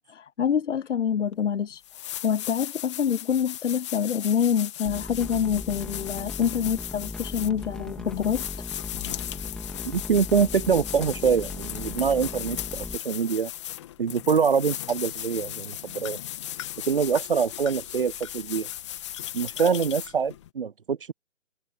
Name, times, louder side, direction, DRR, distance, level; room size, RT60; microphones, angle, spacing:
voice 1, 0.1-1.8 2.2-8.4, left 8 dB, 70° left, 0.8 m, -26 dB
sound 1, 1.3-1.4 1.8-20.5, left 12 dB, 25° left, 2.4 m, -37 dB
sound 2, 4.9-13.0, left 2 dB, ahead, 2.4 m, -38 dB
voice 2, 9.8-13.5 14.0-16.2 16.9-18.7 19.3-21.1, right 6 dB, 45° right, 0.6 m, -25 dB
hypercardioid pair, 170°, 38 cm